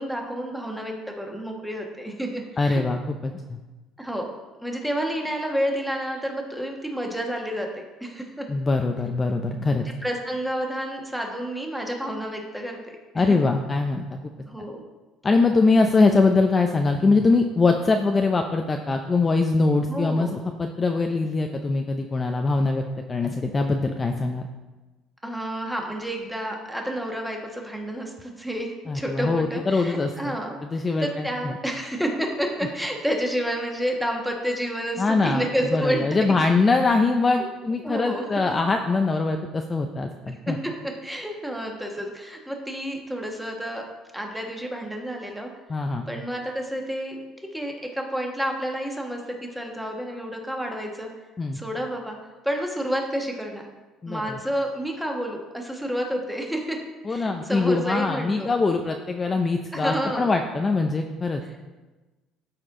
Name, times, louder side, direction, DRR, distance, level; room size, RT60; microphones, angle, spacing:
voice 1, 0.0-2.9 4.0-4.3 4.6-8.5 10.0-13.0 13.3-13.4 14.5-14.8 19.9-20.3 25.2-30.6 31.0-36.3 37.4-37.5 37.8-38.2 40.5-43.9 44.1-45.5 46.1-47.2 47.5-51.1 51.5-52.2 52.4-53.7 54.1-56.8 57.1-58.5 59.7-60.3, equal, ahead, 1 dB, 1.3 m, -30 dB
voice 2, 2.6-3.6 8.5-9.9 13.1-14.1 15.2-22.8 23.1-24.4 28.9-30.4 30.6-31.6 35.0-35.5 35.7-40.6 45.7-46.1 51.4-51.6 54.0-54.4 57.0-61.4, left 3 dB, 25° left, 4 dB, 0.5 m, -23 dB
13.0 x 4.4 x 3.7 m, 1.2 s
cardioid pair, 115°, 0 cm